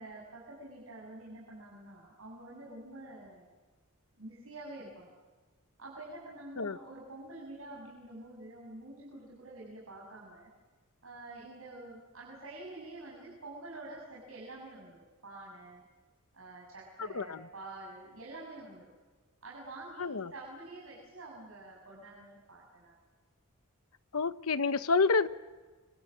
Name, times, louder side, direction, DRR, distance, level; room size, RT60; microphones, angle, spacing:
voice 1, 0.0-3.5 4.2-5.1 5.8-10.5 11.0-15.8 16.3-18.9 19.4-23.0, right 2 dB, 70° right, -4 dB, 6.9 m, -47 dB
voice 2, 20.0-20.3 24.1-25.3, left 4 dB, 80° left, 13 dB, 1.0 m, -28 dB
29.5 x 25.5 x 7.5 m, 1.3 s
head